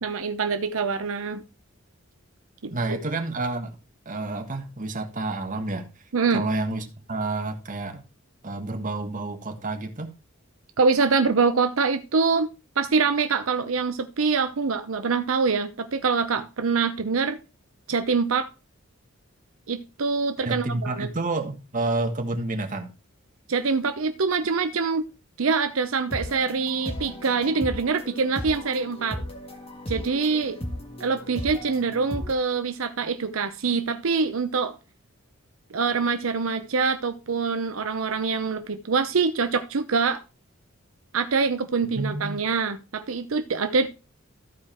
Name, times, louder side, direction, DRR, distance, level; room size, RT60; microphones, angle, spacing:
voice 1, 0.0-1.4 2.6-3.0 6.1-6.4 10.8-12.5 12.8-17.4 17.9-18.5 19.7-21.1 23.5-25.0 25.4-29.2 29.9-30.6 31.0-34.7 35.7-40.2 41.1-43.9, right 4 dB, 80° right, 0.7 m, -24 dB
voice 2, 2.7-3.8 4.0-5.9 6.3-8.0 8.4-10.1 20.4-22.9 41.9-42.4, right 2 dB, 40° right, 1.5 m, -29 dB
sound 1, 26.1-32.3, left 1 dB, 30° left, 1.8 m, -36 dB
14.0 x 4.8 x 4.4 m
head